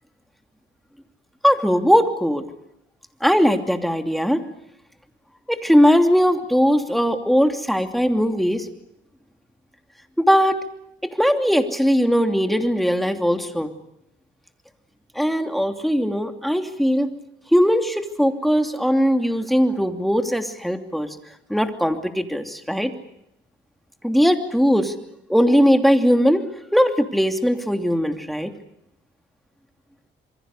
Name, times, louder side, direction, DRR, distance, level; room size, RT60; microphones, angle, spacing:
voice 1, 1.4-2.4 3.2-4.4 5.5-8.7 10.2-10.6 11.0-13.7 15.1-17.1 17.5-21.1 21.5-22.9 24.0-24.9 25.3-26.5 26.7-28.5, equal, ahead, 6 dB, 2.9 m, -19 dB
27.5 x 23.5 x 6.7 m, 0.80 s
cardioid pair, 90°, 20 cm